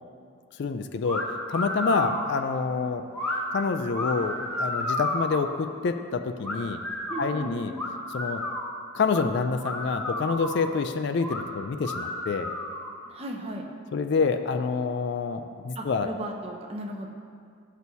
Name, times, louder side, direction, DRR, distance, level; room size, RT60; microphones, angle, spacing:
voice 1, 0.6-3.0 3.5-6.8 7.2-7.7 8.1-8.4 8.9-12.5 13.9-16.1, left 4 dB, 55° left, 8 dB, 0.3 m, -27 dB
sound 1, 1.1-1.2 1.5-2.3 3.1-3.4 3.9-5.4 6.4-7.3 7.8-8.7 9.1-9.2 9.6-10.7 11.2-11.4 11.8-12.9, left 1 dB, 5° left, 0.8 m, -31 dB
voice 2, 7.1-7.6 13.1-13.7 15.7-17.1, right 1 dB, 30° right, 1 dB, 0.6 m, -36 dB
12.0 x 6.2 x 2.8 m, 2.2 s
head